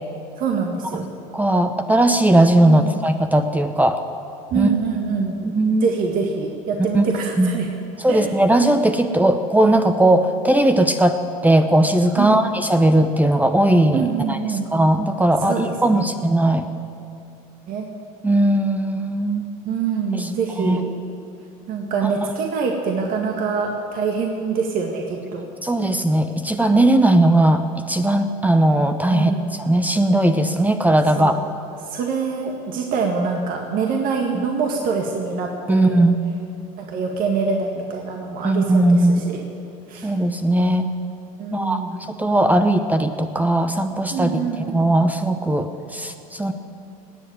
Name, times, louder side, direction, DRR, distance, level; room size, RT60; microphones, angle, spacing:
voice 1, 0.4-1.1 2.6-3.0 4.5-5.4 5.8-7.7 8.1-8.3 12.2-12.5 13.9-14.7 15.4-16.0 17.7-17.9 19.6-20.8 21.7-25.5 29.1-29.5 31.1-31.4 31.9-36.0 36.8-39.4 39.9-40.1 41.4-42.0 44.1-44.9, right 5 dB, 55° right, 1 dB, 1.9 m, -25 dB
voice 2, 1.3-4.0 4.5-4.7 5.4-5.9 6.9-7.0 7.4-7.6 8.0-14.4 14.7-16.7 18.2-19.5 20.1-20.3 20.6-20.8 25.6-31.4 34.3-34.4 35.7-36.2 38.4-39.3 40.0-40.9 41.5-44.4 44.7-46.5, right 1 dB, 10° right, 7 dB, 0.9 m, -18 dB
18.5 x 7.8 x 9.2 m, 2.6 s
supercardioid pair, 90°, 18 cm